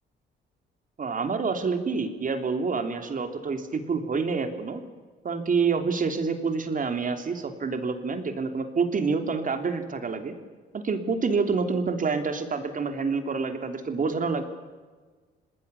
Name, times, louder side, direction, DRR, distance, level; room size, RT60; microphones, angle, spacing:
voice 1, 1.0-4.8 5.2-10.3 10.7-14.4, right 4 dB, 40° right, 7 dB, 3.1 m, -27 dB
27.5 x 19.5 x 7.1 m, 1.4 s
cardioid pair, 90°, 20 cm